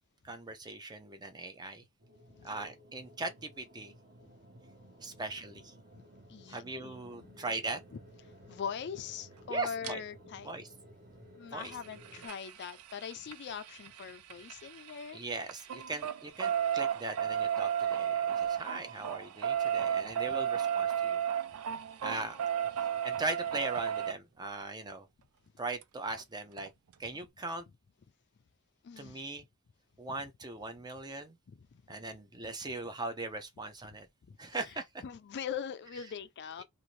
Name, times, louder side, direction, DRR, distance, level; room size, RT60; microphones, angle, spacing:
voice 1, 0.2-1.8 2.4-3.9 5.0-5.7 6.5-7.8 9.5-10.0 10.4-10.7 11.5-11.7 15.1-21.2 22.0-22.4 22.8-25.1 25.6-26.7 27.0-27.6 29.0-29.4 30.0-31.4 31.9-34.1 34.4-35.0, right 3 dB, 20° right, 0.5 m, -39 dB
sound 1, 2.0-12.3, equal, 45° right, 0.9 m, -56 dB
voice 2, 6.3-7.4 7.9-8.0 8.4-10.5 11.4-15.2 20.1-20.2 22.1-22.2 28.8-29.3 31.5-31.7 34.3-34.4 35.0-36.6, left 7 dB, 55° left, 0.4 m, -42 dB
sound 2, 9.8-9.9 11.6-15.1 15.4-24.1 25.8-25.9 26.2-26.3 26.6-26.7, right 9 dB, 80° right, 0.4 m, -33 dB
2.6 x 2.5 x 3.1 m
head